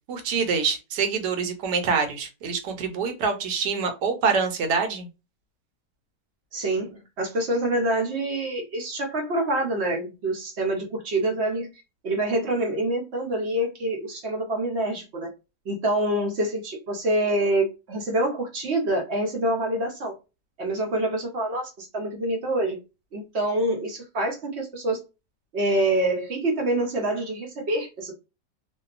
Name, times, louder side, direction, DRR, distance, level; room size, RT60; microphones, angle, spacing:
voice 1, 0.1-5.1, right 5 dB, 75° right, 1.2 m, -25 dB
voice 2, 6.5-11.7 12.0-15.3 15.6-20.2 20.6-22.8 23.1-25.0 25.5-28.1, right 1 dB, 55° right, 0.7 m, -26 dB
2.7 x 2.3 x 2.4 m
omnidirectional pair, 1.8 m